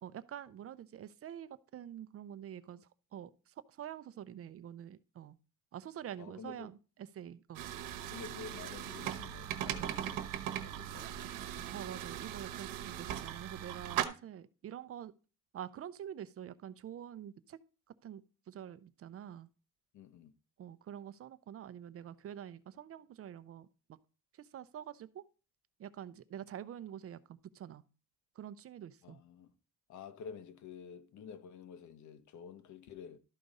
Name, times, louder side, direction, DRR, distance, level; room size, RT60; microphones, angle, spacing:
voice 1, 0.0-5.4 5.7-7.6 11.7-15.1 15.5-17.6 18.0-19.5 20.6-24.0 24.3-25.2 25.8-27.2 27.5-27.8 28.4-29.2, right 10 dB, 45° right, 0.6 m, -47 dB
voice 2, 6.2-6.7 8.1-11.3 19.9-20.3 29.0-29.5 29.9-33.2, left 7 dB, 65° left, 1.1 m, -50 dB
sound 1, 7.5-14.0, right 11 dB, 90° right, 1.1 m, -39 dB
12.5 x 5.1 x 4.1 m
cardioid pair, 125°, 32 cm